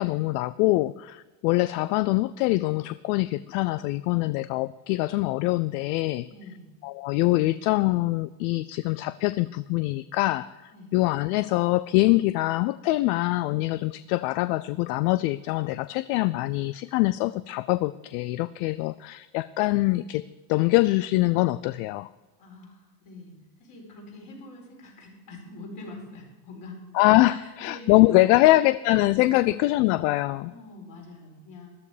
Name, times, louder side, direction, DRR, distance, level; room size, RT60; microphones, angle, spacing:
voice 1, 0.0-6.3 6.8-20.2 20.5-22.1 26.9-30.5, left 19 dB, 60° left, 17 dB, 0.5 m, -24 dB
voice 2, 6.3-6.7 10.7-11.0 22.4-23.3 23.6-26.8 27.2-28.4 29.3-29.6 30.4-31.8, left 2 dB, 40° left, 0 dB, 4.8 m, -44 dB
14.0 x 12.5 x 5.0 m, 1.2 s
supercardioid pair, 140°, 49 cm